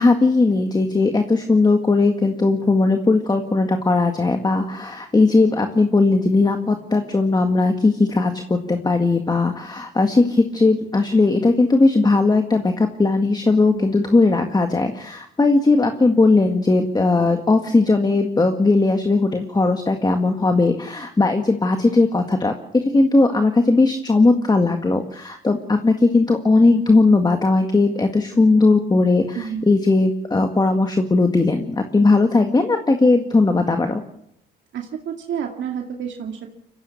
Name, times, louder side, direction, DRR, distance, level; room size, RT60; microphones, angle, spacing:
voice 1, 0.0-34.0, left 3 dB, 20° left, 6 dB, 1.8 m, -18 dB
voice 2, 34.7-36.5, right 8 dB, 70° right, 2 dB, 2.3 m, -29 dB
23.5 x 16.0 x 7.2 m, 0.75 s
cardioid pair, 90°, 20 cm